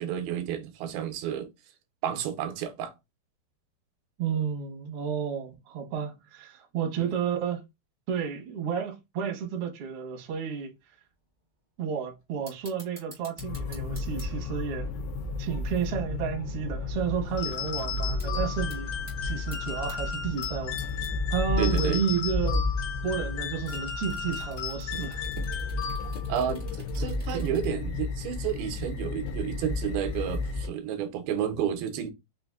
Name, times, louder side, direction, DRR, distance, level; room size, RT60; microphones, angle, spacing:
voice 1, 0.0-1.5 2.0-2.9 7.0-7.1 21.6-22.0 26.3-26.7 26.9-32.1, right 9 dB, 85° right, 2.6 m, -31 dB
voice 2, 4.2-7.6 8.1-10.7 11.8-14.9 15.4-18.9 19.2-20.8 21.3-22.6 23.0-25.2 27.3-27.5, right 7 dB, 65° right, 1.4 m, -31 dB
sound 1, 10.9-11.0 11.4-11.8 12.2-16.7 17.1-17.2 17.5-17.8 18.2-18.3 18.6-19.1 19.5-20.0 20.4-21.1 21.4-21.5 21.7-22.0 23.6-27.8 28.1-28.2, right 1 dB, 35° right, 0.6 m, -51 dB
sound 2, 13.4-30.7, left 3 dB, 90° left, 2.5 m, -33 dB
sound 3, 17.4-26.4, left 7 dB, 70° left, 2.7 m, -36 dB
5.8 x 2.5 x 2.4 m
omnidirectional pair, 4.3 m